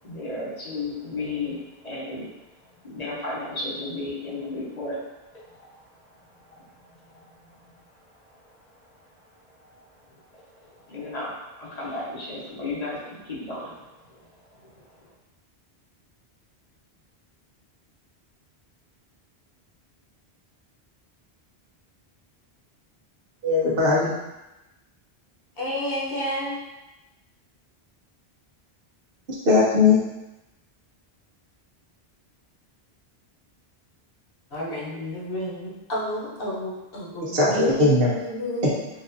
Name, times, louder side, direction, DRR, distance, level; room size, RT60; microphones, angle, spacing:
voice 1, 0.0-2.3 2.6-5.0 5.3-9.2 9.5-15.1, left 2 dB, 45° left, -6 dB, 0.8 m, -36 dB
voice 2, 23.4-24.1 29.4-30.0 37.2-38.1, left 3 dB, 65° right, -5 dB, 1.0 m, -19 dB
voice 3, 25.6-26.6 34.5-38.9, equal, 65° left, -6 dB, 1.1 m, -31 dB
3.9 x 2.4 x 2.6 m, 1.0 s
omnidirectional pair, 1.1 m